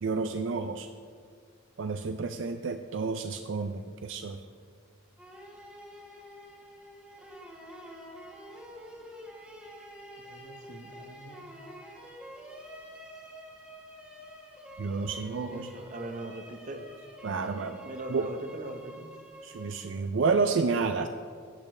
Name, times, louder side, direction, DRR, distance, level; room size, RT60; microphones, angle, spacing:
voice 1, 0.0-0.9 1.8-4.4 14.8-15.7 17.2-17.8 18.1-18.3 19.4-21.1, right 4 dB, 65° right, 7 dB, 0.4 m, -30 dB
sound 1, 5.2-20.2, equal, 5° right, 1.4 m, -47 dB
voice 2, 10.3-11.5 15.4-16.8 17.8-19.1, right 1 dB, 35° right, 6 dB, 0.8 m, -41 dB
12.5 x 8.3 x 3.2 m, 2.1 s
head